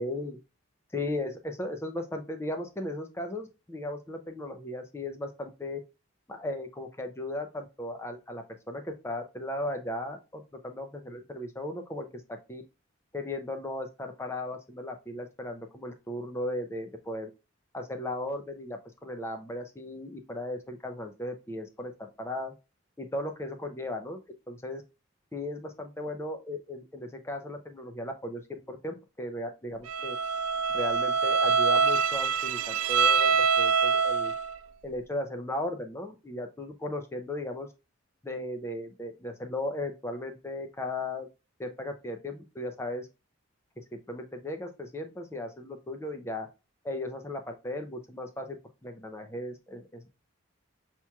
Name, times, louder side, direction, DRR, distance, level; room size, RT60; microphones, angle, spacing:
voice 1, 0.0-0.4 0.9-5.8 6.3-12.6 13.1-17.3 17.7-22.5 23.0-24.2 24.5-24.8 25.3-30.2 30.7-34.3 34.8-37.7 38.2-41.3 41.6-43.1 43.8-46.5 46.8-50.1, left 1 dB, 10° left, 5 dB, 0.4 m, -36 dB
Bowed string instrument, 29.9-34.6, right 5 dB, 85° right, 0.4 m, -25 dB
5.8 x 2.9 x 2.3 m, 0.28 s
head